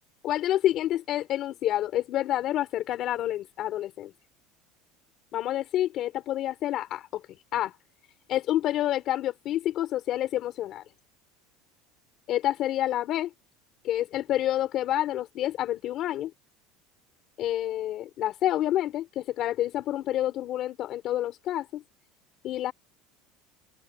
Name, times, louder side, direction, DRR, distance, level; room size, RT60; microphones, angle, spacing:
voice 1, 0.2-4.1 5.3-7.2 7.5-7.7 8.3-10.8 12.3-13.3 13.8-16.3 17.4-21.8 22.4-22.7, left 13 dB, 35° left, 3.7 m, -28 dB
open air
cardioid pair, 180°, 0 cm